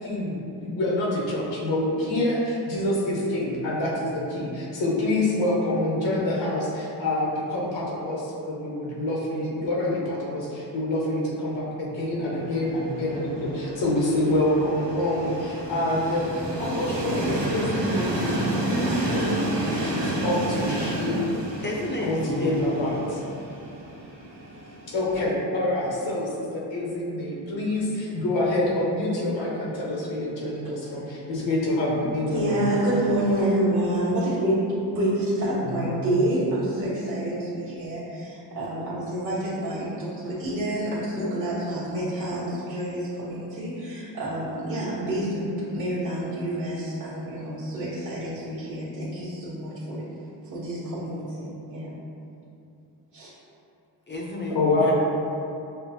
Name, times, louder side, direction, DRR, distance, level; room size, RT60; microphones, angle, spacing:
voice 1, 0.0-21.3 21.6-21.7 22.0-23.2 24.9-32.6 35.5-36.2 54.5-54.9, left 1 dB, 85° left, -4 dB, 1.0 m, -27 dB
Train, 12.4-25.3, right 1 dB, 75° right, 0.8 m, -31 dB
voice 2, 21.6-22.6 54.1-54.9, left 1 dB, 25° left, -2 dB, 0.5 m, -30 dB
voice 3, 32.3-50.0 50.5-52.0 53.1-53.3, right 1 dB, 45° right, -11 dB, 1.1 m, -28 dB
5.9 x 2.0 x 2.7 m, 2.7 s
cardioid pair, 100°, 43 cm